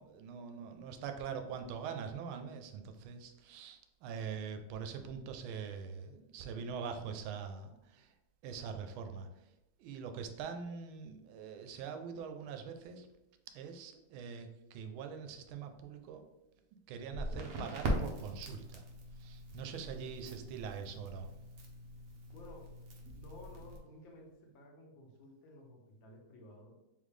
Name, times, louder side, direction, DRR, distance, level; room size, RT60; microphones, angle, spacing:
voice 1, 0.0-8.1 8.4-9.4 9.8-13.1 13.5-16.2 16.9-18.9 19.2-21.3, right 6 dB, 85° right, 7 dB, 1.4 m, -43 dB
Crackle, 17.1-23.8, equal, 60° right, 0.8 m, -41 dB
voice 2, 20.1-20.7 22.3-22.7 23.1-26.7, left 1 dB, 75° left, 0 dB, 1.6 m, -54 dB
3.7 x 3.7 x 3.2 m, 0.94 s
omnidirectional pair, 2.2 m